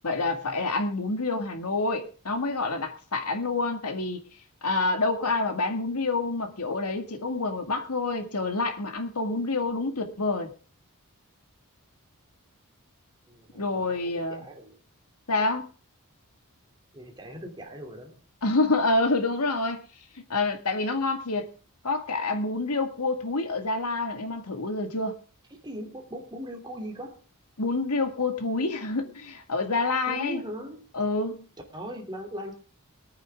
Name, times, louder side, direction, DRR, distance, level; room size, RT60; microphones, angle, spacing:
voice 1, 0.0-4.2 4.6-10.5 13.5-14.4 15.3-15.7 18.4-19.8 20.1-21.5 21.8-25.2 27.6-30.4 30.9-31.4, left 3 dB, 90° left, 2.0 m, -27 dB
voice 2, 13.3-14.8 16.9-18.2 25.5-27.2 29.0-29.1 30.1-30.8 31.7-32.5, equal, 20° right, 3.1 m, -39 dB
21.5 x 9.1 x 3.6 m
head